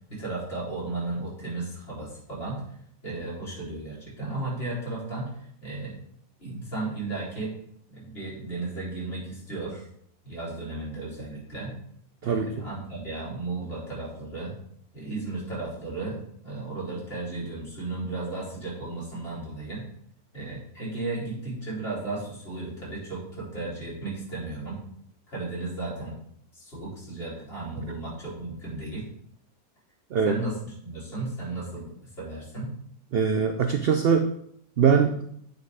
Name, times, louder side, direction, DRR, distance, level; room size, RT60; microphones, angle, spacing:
voice 1, 0.1-2.6 3.0-5.3 5.6-5.9 6.4-7.5 7.9-9.9 10.2-11.8 12.2-14.6 14.9-19.9 20.3-24.8 25.3-26.2 26.5-29.1 30.2-32.7, right 2 dB, 40° left, -7 dB, 3.6 m, -34 dB
voice 2, 33.1-34.3 34.8-35.2, right 6 dB, 70° right, 6 dB, 0.5 m, -22 dB
8.9 x 4.0 x 4.8 m, 0.70 s
omnidirectional pair, 1.6 m